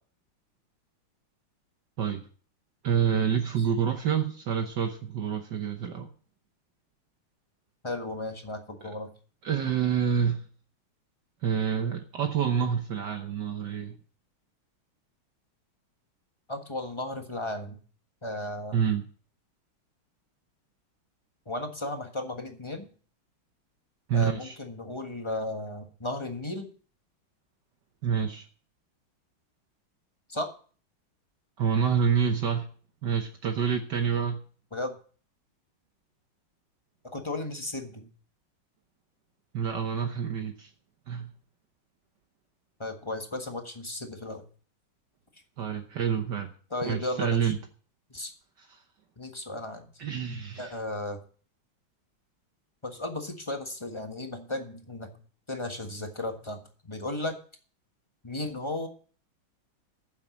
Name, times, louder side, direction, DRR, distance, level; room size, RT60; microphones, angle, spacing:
voice 1, 2.0-2.3 2.8-6.1 8.8-8.9 9.4-10.5 11.4-14.0 18.7-19.1 24.1-24.6 28.0-28.4 31.6-32.7 33.0-34.4 39.5-40.7 41.1-41.3 45.6-46.5 46.8-47.6 48.6-48.8 50.0-50.8, right 7 dB, 60° right, 6 dB, 1.5 m, -27 dB
voice 2, 7.8-9.1 16.5-17.8 18.2-18.8 21.5-22.9 24.1-26.7 30.3-30.5 34.7-34.9 37.0-38.1 42.8-44.4 46.7-47.5 48.1-48.3 49.2-49.9 50.6-51.2 52.8-55.1 55.5-56.6 56.9-57.4 58.2-58.9, left 2 dB, 15° left, 5 dB, 1.2 m, -35 dB
9.6 x 7.4 x 7.1 m, 0.41 s
omnidirectional pair, 2.3 m